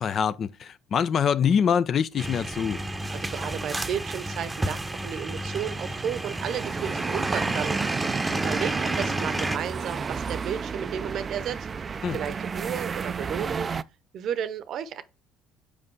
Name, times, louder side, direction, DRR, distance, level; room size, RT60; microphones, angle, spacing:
voice 1, 0.0-2.8 12.0-12.2, left 7 dB, 50° left, 0.5 m, -24 dB
sound 1, 2.2-9.6, right 1 dB, 15° right, 0.8 m, -30 dB
voice 2, 3.1-11.7 12.1-13.7 14.1-15.0, right 8 dB, 60° right, 0.7 m, -33 dB
sound 2, 5.6-13.8, right 5 dB, 35° right, 0.3 m, -33 dB
5.4 x 4.8 x 4.6 m
supercardioid pair, 70°, 0 cm